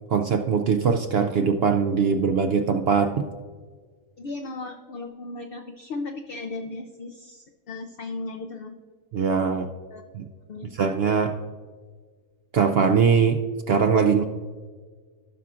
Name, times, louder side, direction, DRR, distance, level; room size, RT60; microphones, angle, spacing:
voice 1, 0.1-3.2 9.1-9.7 10.1-10.2 10.7-11.4 12.5-13.4 13.7-14.2, right 6 dB, 65° right, 7 dB, 0.6 m, -21 dB
voice 2, 4.2-8.8 9.9-10.0 10.5-10.7, left 3 dB, 55° left, 4 dB, 0.6 m, -36 dB
16.0 x 5.8 x 2.5 m, 1.5 s
omnidirectional pair, 1.4 m